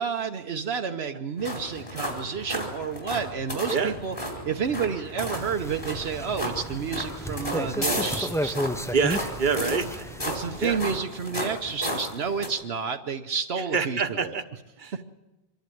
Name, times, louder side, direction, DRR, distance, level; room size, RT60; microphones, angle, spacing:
voice 1, 0.0-4.2 4.4-8.7 10.2-14.3, right 6 dB, 75° right, 5 dB, 1.1 m, -30 dB
sound 1, 1.4-12.5, equal, 30° left, 4.4 m, -34 dB
sound 2, 5.3-11.0, equal, 5° left, 0.4 m, -33 dB
voice 2, 8.9-10.3 10.6-10.8 13.7-14.4 14.8-14.9, right 5 dB, 50° right, 7 dB, 1.3 m, -26 dB
25.5 x 12.0 x 9.2 m, 1.1 s
omnidirectional pair, 1.1 m